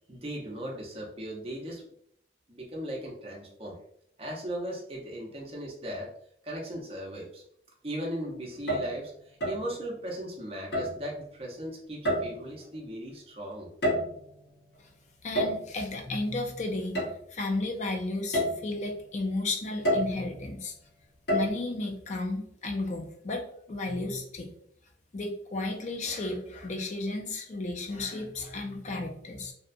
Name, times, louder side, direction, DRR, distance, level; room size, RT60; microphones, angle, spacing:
voice 1, 0.1-1.8 2.5-3.8 4.2-6.1 6.4-7.4 7.8-13.7, right 1 dB, 35° right, -2 dB, 0.6 m, -37 dB
sound 1, 8.5-9.0 9.4-9.7 10.7-11.0 12.0-12.5 13.6-14.3 15.3-15.7 16.9-17.1 17.6-17.7 18.3-18.7 19.8-20.2 21.3-21.5, equal, 70° left, 1.0 m, -28 dB
voice 2, 15.2-17.0 17.3-20.7 21.3-24.5 25.1-29.5, left 2 dB, 40° left, 2 dB, 0.4 m, -33 dB
2.7 x 2.2 x 2.5 m, 0.68 s
head